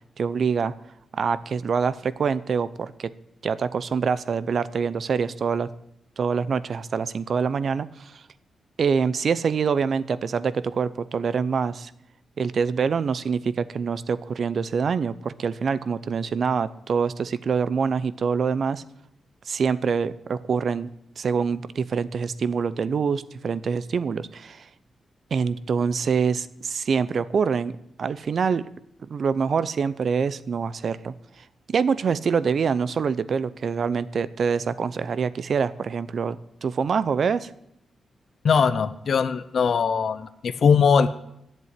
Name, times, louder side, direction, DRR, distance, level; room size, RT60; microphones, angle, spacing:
voice 1, 0.2-0.7 1.1-3.1 3.4-5.7 6.2-8.2 8.8-11.9 12.4-18.8 19.5-20.9 21.2-24.7 25.3-27.7 28.0-28.6 29.1-31.1 31.7-37.5, right 6 dB, 55° right, 16 dB, 0.7 m, -25 dB
voice 2, 38.4-41.1, left 6 dB, 60° left, 11 dB, 0.7 m, -20 dB
11.5 x 7.6 x 9.7 m, 0.77 s
cardioid pair, 115°, 0 cm